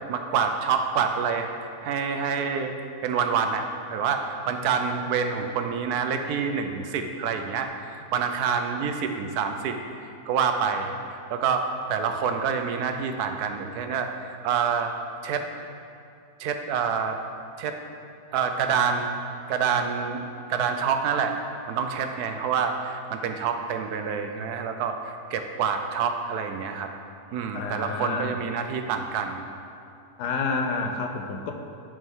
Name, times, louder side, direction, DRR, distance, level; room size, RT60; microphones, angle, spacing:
voice 1, 0.1-2.7 3.0-14.9 15.2-15.5 16.4-17.2 17.6-17.8 18.3-19.1 19.5-21.4 21.7-26.9 27.3-29.4, right 6 dB, 75° right, 6 dB, 1.1 m, -27 dB
voice 2, 27.5-28.4 30.2-31.5, left 4 dB, 80° left, 4 dB, 1.3 m, -29 dB
11.0 x 5.3 x 3.6 m, 2.5 s
omnidirectional pair, 1.7 m